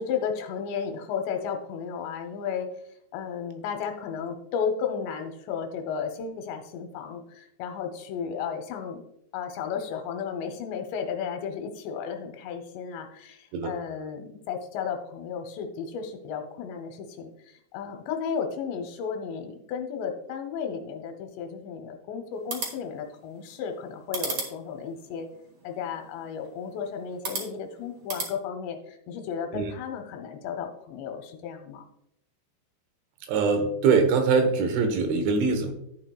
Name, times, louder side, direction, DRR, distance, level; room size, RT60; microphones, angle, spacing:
voice 1, 0.0-2.7 3.1-9.0 9.3-25.3 25.6-31.9, left 7 dB, 80° left, 6 dB, 2.8 m, -34 dB
sound 1, 22.3-28.3, right 4 dB, 55° right, 2.1 m, -38 dB
voice 2, 33.3-35.7, right 4 dB, 80° right, 6 dB, 3.5 m, -23 dB
11.5 x 8.9 x 2.3 m, 0.77 s
omnidirectional pair, 5.4 m